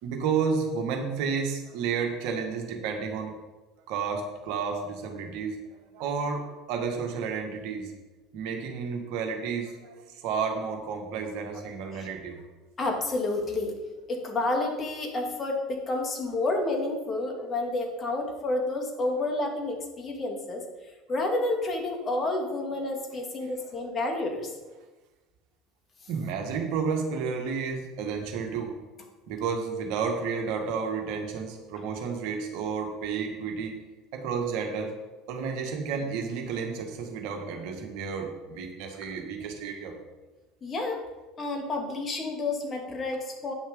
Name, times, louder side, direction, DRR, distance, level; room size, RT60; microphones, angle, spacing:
voice 1, 0.0-3.3 3.9-5.6 5.9-7.9 8.3-12.4 23.4-23.5 26.1-28.7 29.3-33.8 34.1-34.9 35.3-39.9, right 5 dB, 60° right, 3 dB, 1.8 m, -31 dB
voice 2, 12.8-13.8 14.1-20.6 21.1-24.5 40.6-41.0 41.4-43.5, left 2 dB, 30° left, 2 dB, 2.6 m, -30 dB
9.7 x 6.4 x 5.3 m, 1.2 s
figure-of-eight pair, 70°, 0 cm